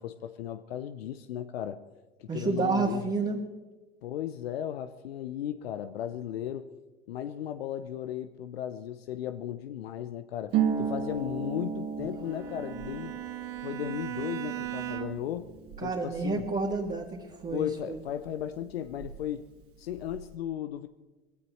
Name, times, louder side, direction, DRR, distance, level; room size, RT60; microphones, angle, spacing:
voice 1, 0.0-1.8 2.2-3.1 4.0-6.7 7.1-13.2 13.6-15.5 15.8-16.4 17.5-19.4 19.8-20.9, left 11 dB, 80° left, 0.7 m, -35 dB
voice 2, 2.3-3.4 15.8-18.0, right 4 dB, 25° right, 2.3 m, -30 dB
Harp, 10.5-18.0 18.2-19.4 19.6-20.3, right 7 dB, 50° right, 2.1 m, -35 dB
Bowed string instrument, 12.3-15.4, right 15 dB, 65° right, 1.5 m, -38 dB
22.0 x 16.5 x 3.2 m
hypercardioid pair, 80°, 30 cm